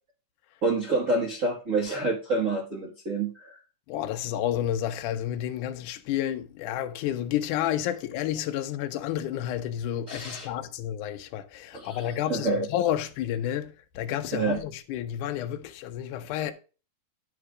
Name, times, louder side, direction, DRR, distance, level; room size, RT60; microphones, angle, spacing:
voice 1, 0.6-3.6 10.1-10.5 11.7-12.0 12.3-12.7 14.3-14.6, right 3 dB, 65° right, 0.7 m, -27 dB
voice 2, 3.9-16.5, left 11 dB, 75° left, 2.2 m, -30 dB
11.0 x 3.7 x 4.8 m
omnidirectional pair, 3.7 m